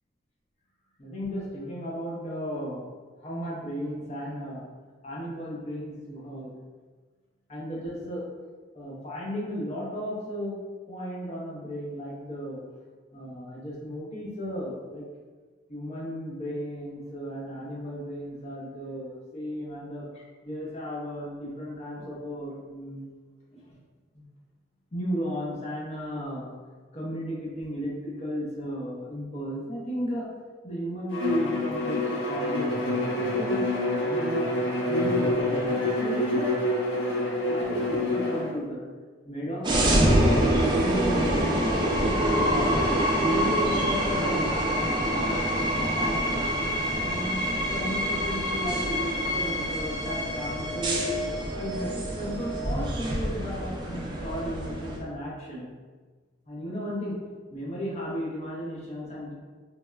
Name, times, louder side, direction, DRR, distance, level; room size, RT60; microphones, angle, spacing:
voice 1, 1.0-2.8 3.2-4.6 5.0-6.5 7.5-8.3 8.7-10.6 10.9-12.6 13.1-15.0 15.7-23.1 23.5-23.8 24.1-24.3 24.9-26.6 26.9-30.3 30.6-34.5 34.9-36.5 37.5-38.8 39.3-42.8 43.3-44.6 45.1-45.4 46.0-46.4 47.0-51.1 51.6-55.7 56.5-57.2 57.5-59.3, equal, 35° left, -5 dB, 0.6 m, -34 dB
Bowed string instrument, 31.1-38.5, left 1 dB, 85° left, 0.5 m, -27 dB
sound 1, 39.6-55.0, equal, 25° right, 0.3 m, -26 dB
3.0 x 2.1 x 2.3 m, 1.4 s
head